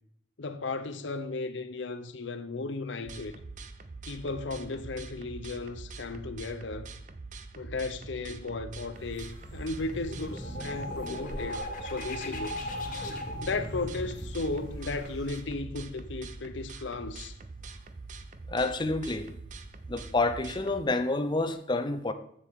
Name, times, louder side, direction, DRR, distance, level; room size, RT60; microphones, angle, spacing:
voice 1, 0.4-3.4 4.1-6.9 7.5-12.8 13.4-17.3, left 3 dB, 90° left, 0.7 m, -35 dB
sound 1, 3.1-20.8, right 3 dB, 45° right, 0.6 m, -44 dB
sound 2, 8.9-15.4, equal, 75° right, 3.7 m, -48 dB
sound 3, 9.3-16.8, left 1 dB, 50° left, 1.5 m, -39 dB
voice 2, 18.5-19.3 19.9-22.1, left 2 dB, 25° left, 0.6 m, -28 dB
8.2 x 7.3 x 3.6 m
head